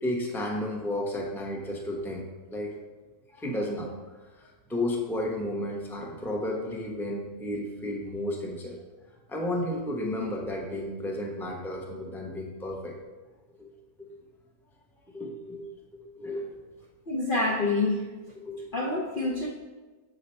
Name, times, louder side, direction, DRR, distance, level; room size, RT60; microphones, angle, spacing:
voice 1, 0.0-2.3 2.5-2.8 3.3-3.9 4.3-8.8 9.3-12.9 13.6-13.7 14.0-14.1 15.1-16.5 18.4-18.9, left 1 dB, ahead, -1 dB, 0.7 m, -33 dB
voice 2, 17.1-18.1 18.7-19.5, left 2 dB, 45° left, -2 dB, 0.7 m, -27 dB
7.7 x 5.1 x 4.4 m, 1.3 s
omnidirectional pair, 1.8 m